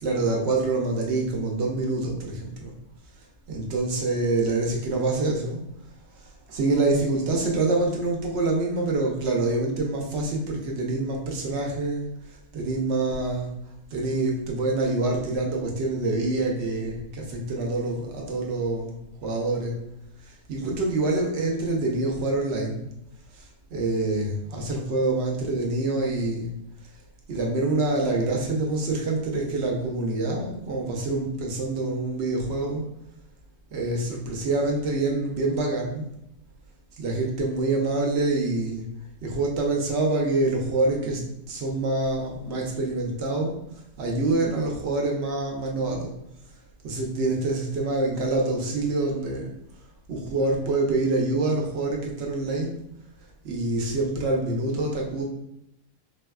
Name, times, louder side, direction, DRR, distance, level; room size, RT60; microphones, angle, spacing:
voice 1, 0.0-2.7 3.5-5.6 6.5-12.1 12.5-13.5 13.9-18.9 19.2-19.8 20.3-22.9 23.4-23.5 23.7-26.5 27.3-32.9 33.7-36.0 37.0-38.9 39.2-43.6 44.0-46.1 46.8-49.5 50.1-52.8 53.4-55.2, right 2 dB, 60° right, -1 dB, 0.8 m, -26 dB
4.0 x 2.2 x 2.2 m, 0.83 s
omnidirectional pair, 1.5 m